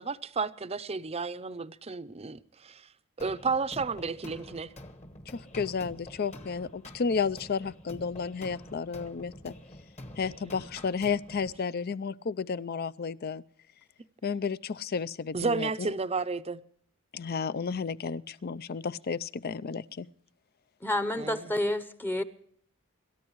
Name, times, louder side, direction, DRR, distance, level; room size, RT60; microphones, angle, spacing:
voice 1, 0.0-2.8 3.2-4.7 10.6-10.7 15.3-16.6 21.2-21.5, right 4 dB, 30° right, 0.6 m, -32 dB
sound 1, 3.2-11.6, left 1 dB, 35° left, 1.3 m, -47 dB
voice 2, 5.3-9.5 10.2-13.4 14.2-15.9 17.1-20.1, left 5 dB, 50° left, 0.5 m, -32 dB
voice 3, 20.8-22.2, left 1 dB, 10° left, 0.8 m, -29 dB
27.5 x 14.0 x 3.1 m
head